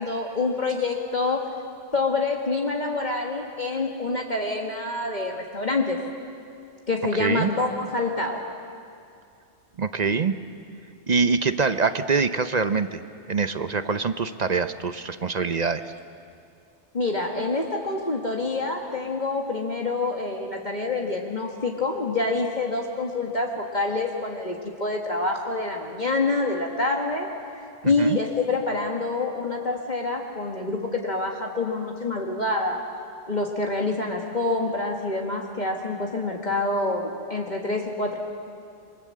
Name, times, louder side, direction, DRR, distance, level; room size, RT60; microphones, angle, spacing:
voice 1, 0.0-1.4 1.9-6.0 6.9-8.4 16.9-27.3 27.8-32.8 33.3-38.2, left 3 dB, 40° left, 1 dB, 1.7 m, -26 dB
voice 2, 7.2-7.5 9.8-10.4 11.1-13.0 13.3-15.9 27.8-28.2, right 5 dB, 40° right, 11 dB, 0.7 m, -24 dB
27.0 x 24.0 x 7.6 m, 2.4 s
omnidirectional pair, 1.3 m